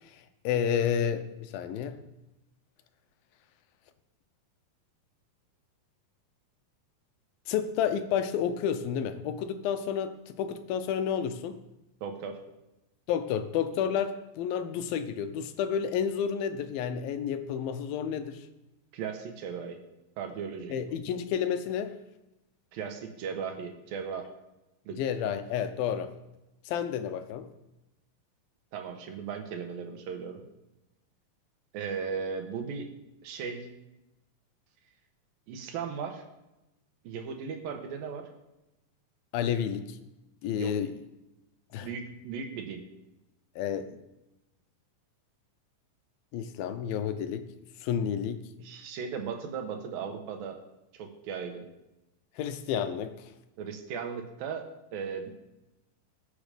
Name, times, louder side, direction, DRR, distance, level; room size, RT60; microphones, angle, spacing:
voice 1, 0.4-2.0 7.5-11.6 13.1-18.4 20.7-21.9 25.0-26.1 26.7-27.5 39.3-39.8 40.4-40.9 41.7-41.9 43.6-43.9 46.3-47.5 47.8-48.5 52.4-53.1, left 8 dB, 85° left, 10 dB, 2.7 m, -30 dB
voice 2, 12.0-12.4 18.9-19.8 20.2-20.7 22.7-24.3 24.9-25.0 28.7-30.4 31.7-32.9 33.2-33.7 35.5-36.2 37.0-38.3 40.6-40.7 41.8-42.8 48.6-50.6 51.0-51.7 53.6-55.3, right 6 dB, 80° right, 4 dB, 3.2 m, -37 dB
20.0 x 7.1 x 5.1 m, 0.97 s
omnidirectional pair, 4.1 m